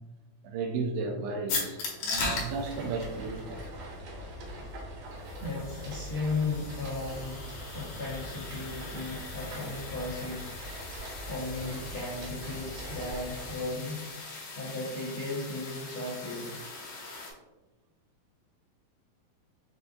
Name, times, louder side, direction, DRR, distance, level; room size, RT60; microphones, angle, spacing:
voice 1, 0.4-3.7, right 4 dB, 80° right, 3 dB, 2.3 m, -34 dB
sound 1, 1.5-17.3, left 3 dB, 70° left, 1.9 m, -40 dB
sound 2, 2.1-13.6, equal, 65° right, 2.8 m, -42 dB
voice 2, 5.4-14.1 14.5-16.6, left 3 dB, 90° left, -9 dB, 1.2 m, -36 dB
6.8 x 2.5 x 2.5 m, 1.1 s
omnidirectional pair, 4.5 m